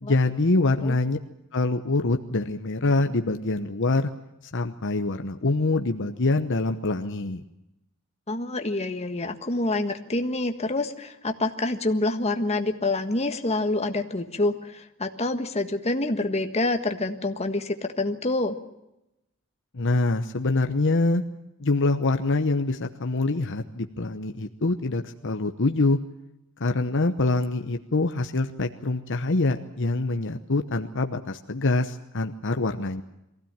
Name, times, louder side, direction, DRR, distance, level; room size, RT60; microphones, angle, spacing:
voice 1, 0.0-1.2 1.5-4.1 4.5-7.4 19.7-21.2 21.6-26.0 26.6-33.0, left 2 dB, 55° left, 6 dB, 1.0 m, -25 dB
voice 2, 8.3-18.6, left 2 dB, 30° left, 6 dB, 1.6 m, -27 dB
23.0 x 16.0 x 8.9 m, 0.90 s
head